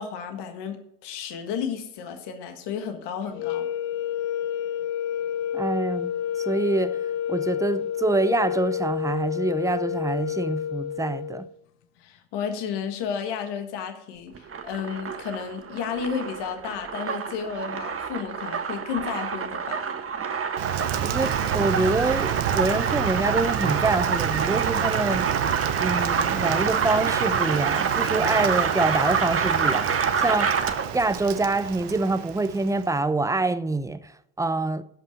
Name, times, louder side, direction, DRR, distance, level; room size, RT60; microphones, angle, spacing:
voice 1, 0.0-3.7 12.0-19.8, left 7 dB, 65° left, 1.6 m, -32 dB
sound 1, 3.3-11.5, left 9 dB, 90° left, 0.8 m, -29 dB
voice 2, 5.5-6.1 6.4-7.0 7.3-11.5 21.0-25.3 25.8-30.5 30.9-34.8, right 2 dB, 5° right, 0.6 m, -26 dB
sound 2, 14.3-31.0, right 6 dB, 30° right, 1.2 m, -27 dB
Rain, 20.6-33.0, right 11 dB, 65° right, 1.0 m, -30 dB
12.0 x 5.5 x 6.5 m
hypercardioid pair, 65°, 45 cm